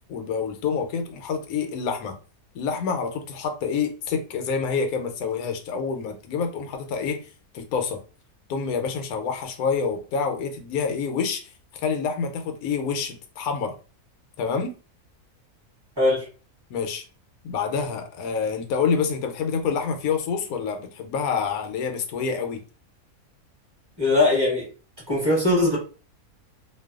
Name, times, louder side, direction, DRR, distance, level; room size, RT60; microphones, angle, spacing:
voice 1, 0.1-2.2 2.5-7.3 7.5-8.0 8.5-11.5 11.8-13.7 14.4-14.7 16.7-17.0 17.4-22.6, left 6 dB, 80° left, 5 dB, 1.0 m, -27 dB
voice 2, 24.0-24.7 25.1-25.8, left 2 dB, 20° right, -5 dB, 1.0 m, -20 dB
2.5 x 2.3 x 2.3 m, 0.35 s
omnidirectional pair, 1.6 m